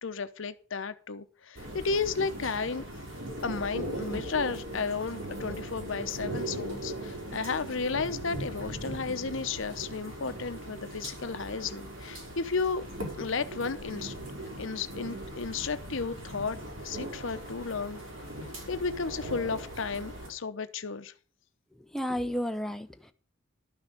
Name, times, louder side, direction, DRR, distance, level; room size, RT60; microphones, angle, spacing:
voice 1, 0.0-2.8 3.4-12.8 13.2-14.1 14.6-16.6 16.8-18.0 18.7-21.1, left 4 dB, 70° left, 0.8 m, -33 dB
sound 1, 1.6-20.3, right 1 dB, 80° right, 5.2 m, -39 dB
voice 2, 21.8-23.1, equal, ahead, 0.6 m, -32 dB
12.0 x 6.2 x 6.6 m
head